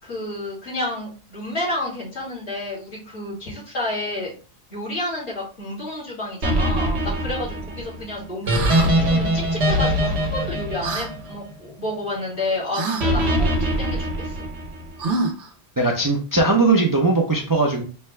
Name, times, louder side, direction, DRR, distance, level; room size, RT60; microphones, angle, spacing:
voice 1, 0.0-4.3 4.7-8.5 8.8-14.4, left 1 dB, 75° left, -6 dB, 2.7 m, -30 dB
sound 1, 6.4-11.7 13.0-14.9, equal, 70° right, 1.3 m, -22 dB
sound 2, 8.5-8.9 10.8-11.1 12.7-13.1 15.0-15.5, right 3 dB, 90° right, 1.0 m, -26 dB
voice 2, 15.8-17.8, right 3 dB, 25° right, 0 dB, 0.5 m, -19 dB
5.6 x 2.2 x 3.2 m, 0.38 s
omnidirectional pair, 1.2 m